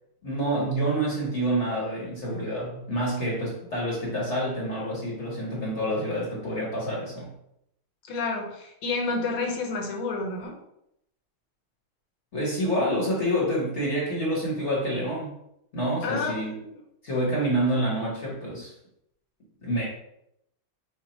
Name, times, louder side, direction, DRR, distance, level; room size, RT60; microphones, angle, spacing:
voice 1, 0.2-7.3 12.3-15.4 15.7-16.6 17.0-18.7 19.6-19.9, right 1 dB, 45° left, -4 dB, 1.0 m, -27 dB
voice 2, 8.1-10.6 16.0-16.6, left 3 dB, 65° left, 1 dB, 1.5 m, -30 dB
5.8 x 2.1 x 4.2 m, 0.78 s
omnidirectional pair, 2.3 m